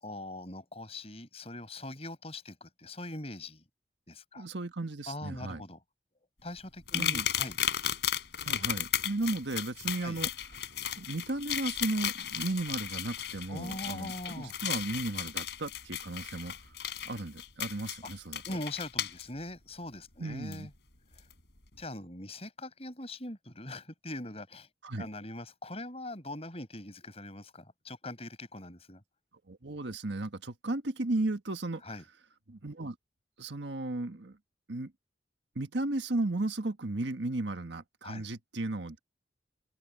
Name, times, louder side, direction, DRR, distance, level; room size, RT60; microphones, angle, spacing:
voice 1, 0.0-3.6 4.1-4.5 5.1-5.8 6.4-7.6 10.0-10.2 13.5-14.5 18.0-18.1 18.4-20.7 21.2-21.3 21.8-24.7 25.0-29.0 31.8-32.0 38.0-38.3, left 1 dB, 35° left, 5.8 m, -42 dB
voice 2, 4.3-5.6 6.9-7.3 8.4-10.3 11.0-16.5 17.0-18.4 20.2-20.7 24.8-25.1 29.5-31.9 32.5-32.9 33.4-34.4 34.7-34.9 35.5-39.0, right 2 dB, 75° right, 1.5 m, -35 dB
sound 1, 6.9-19.2 20.5-20.6 21.2-21.3, left 10 dB, 65° left, 4.8 m, -35 dB
open air
head